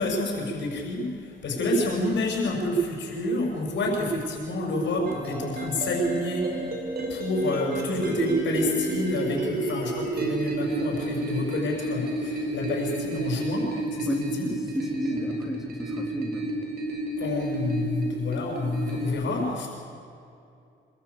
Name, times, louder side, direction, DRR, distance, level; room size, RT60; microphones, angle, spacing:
voice 1, 0.0-6.7 7.1-14.5 15.1-15.2 17.2-19.7, left 1 dB, 65° left, 0 dB, 6.5 m, -28 dB
sound 1, 5.1-19.1, right 2 dB, 50° right, 5.6 m, -31 dB
voice 2, 14.1-16.5, equal, ahead, 0 dB, 3.0 m, -32 dB
25.5 x 13.5 x 8.4 m, 2.6 s
cardioid pair, 90°, 20 cm